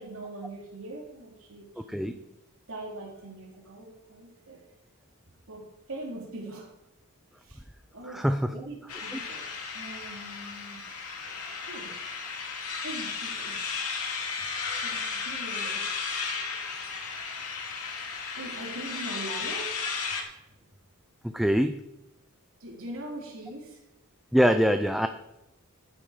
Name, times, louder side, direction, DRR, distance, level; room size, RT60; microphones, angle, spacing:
voice 1, 0.0-2.2 2.7-4.6 5.5-6.7 7.4-7.6 7.9-9.5 9.7-10.8 11.7-11.9 12.8-13.6 14.8-15.9 18.4-19.7 22.6-23.8, right 1 dB, 65° right, -1 dB, 3.3 m, -41 dB
voice 2, 8.1-8.5 21.3-21.8 24.3-25.1, equal, ahead, 8 dB, 0.4 m, -23 dB
sound 1, 8.9-20.2, left 5 dB, 80° left, 2.4 m, -34 dB
12.5 x 9.0 x 5.0 m, 0.91 s
head